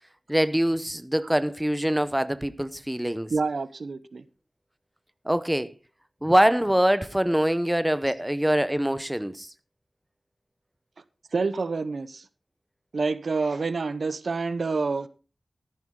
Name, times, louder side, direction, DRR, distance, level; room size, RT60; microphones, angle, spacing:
voice 1, 0.3-3.3 5.2-5.7 6.2-9.5, equal, 10° right, 0.8 m, -24 dB
voice 2, 3.3-4.2 11.3-12.2 12.9-15.1, right 4 dB, 75° right, 0.8 m, -27 dB
13.5 x 11.0 x 3.8 m
wide cardioid pair, 75°, 0 cm